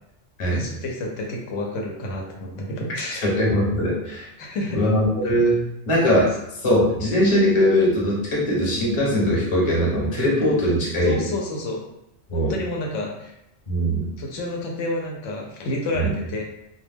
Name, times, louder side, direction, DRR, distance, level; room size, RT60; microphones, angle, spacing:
voice 1, 0.5-3.3 4.4-4.8 11.0-11.8 12.3-13.3 14.2-16.4, left 1 dB, 85° left, -1 dB, 0.9 m, -29 dB
voice 2, 3.2-4.3 4.7-5.6 5.9-6.3 6.6-11.2 12.3-12.5 13.7-14.1 16.0-16.1, equal, 30° left, -4 dB, 0.7 m, -20 dB
2.2 x 2.1 x 3.3 m, 0.81 s
omnidirectional pair, 1.2 m